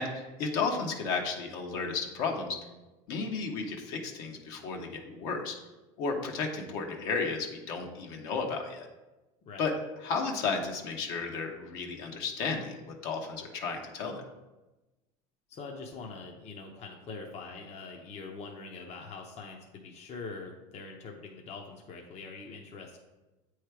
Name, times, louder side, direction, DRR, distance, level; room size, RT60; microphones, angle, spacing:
voice 1, 0.0-2.7 3.1-5.6 6.0-8.9 9.6-9.7 10.0-14.2, left 4 dB, 65° left, 2 dB, 1.2 m, -33 dB
voice 2, 15.5-23.0, left 4 dB, 40° left, 1 dB, 0.8 m, -43 dB
8.0 x 3.2 x 4.7 m, 1.1 s
supercardioid pair, 105°, 17 cm